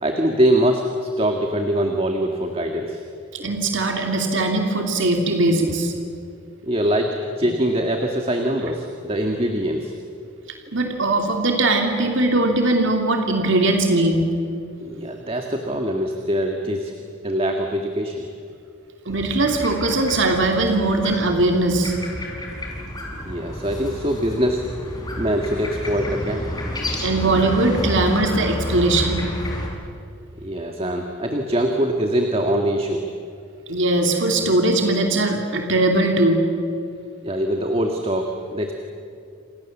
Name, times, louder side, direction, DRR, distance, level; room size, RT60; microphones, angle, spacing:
voice 1, 0.0-3.0 6.6-9.9 14.8-16.9 17.2-18.3 23.3-24.6 25.2-26.6 30.4-33.0 37.2-38.7, equal, 25° right, 3 dB, 1.8 m, -23 dB
voice 2, 3.3-5.9 10.7-14.2 19.1-22.0 22.3-22.4 27.0-29.2 33.7-36.4, right 2 dB, 60° right, 3 dB, 2.7 m, -20 dB
sound 1, 19.1-29.7, equal, 20° left, 4.8 m, -30 dB
28.5 x 27.0 x 7.3 m, 2.4 s
head